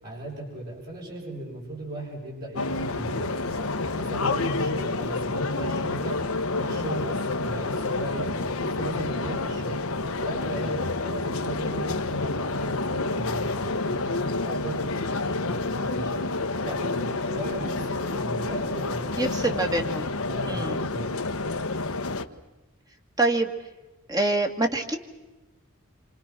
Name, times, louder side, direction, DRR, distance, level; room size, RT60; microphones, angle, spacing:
voice 1, 0.0-3.6 3.9-6.2 6.5-8.3 8.6-9.8 10.2-14.1 14.4-16.2 16.6-19.0 19.4-19.5 20.3-21.1, right 1 dB, 45° right, -3 dB, 7.4 m, -37 dB
sound 1, 2.6-22.3, left 3 dB, 80° left, 1.3 m, -29 dB
voice 2, 19.2-20.1 20.5-20.8 23.2-23.5 24.1-25.0, right 2 dB, 20° right, 5 dB, 2.2 m, -25 dB
28.0 x 27.0 x 6.1 m, 1.1 s
head